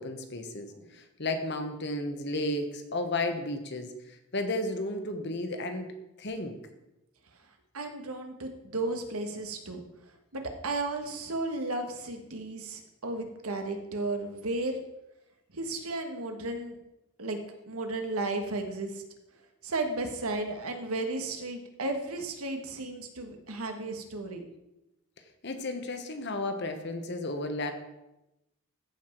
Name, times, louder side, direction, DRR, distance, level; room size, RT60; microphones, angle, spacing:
voice 1, 0.0-5.9 6.2-6.6 25.4-27.7, left 2 dB, 50° left, 6 dB, 1.2 m, -33 dB
voice 2, 7.7-9.8 10.3-14.8 15.5-16.8 17.2-17.4 17.7-19.0 19.6-24.4, right 2 dB, 80° right, 5 dB, 1.5 m, -34 dB
14.5 x 5.8 x 4.5 m, 0.93 s
head